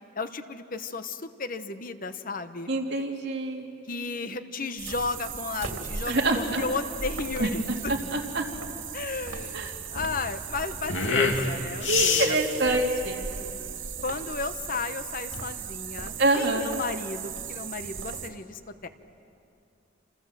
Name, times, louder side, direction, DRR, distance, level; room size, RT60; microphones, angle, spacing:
voice 1, 0.2-2.7 3.9-7.9 8.9-9.6 9.9-12.4 14.0-18.9, left 3 dB, 45° left, 10 dB, 1.0 m, -34 dB
voice 2, 2.7-3.7 6.0-6.6 7.4-8.4 9.5-9.7 11.9-13.2 16.2-16.7, right 2 dB, 60° right, 0 dB, 3.0 m, -26 dB
sound 1, 4.8-18.3, right 6 dB, 85° right, 2.7 m, -37 dB
sound 2, 5.8-13.9, left 4 dB, 75° left, 2.4 m, -30 dB
28.0 x 28.0 x 7.6 m, 2.6 s
head